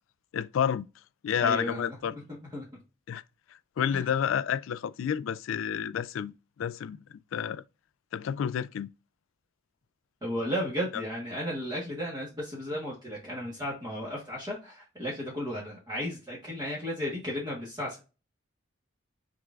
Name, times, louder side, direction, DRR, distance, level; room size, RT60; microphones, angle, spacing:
voice 1, 0.3-0.9 1.2-2.1 3.1-3.2 3.8-7.0 7.3-7.6 8.1-8.9 10.9-11.0, left 8 dB, 75° left, 0.3 m, -30 dB
voice 2, 1.4-2.8 3.9-4.0 10.2-18.1, equal, 20° right, 1.3 m, -34 dB
6.2 x 3.5 x 2.4 m
head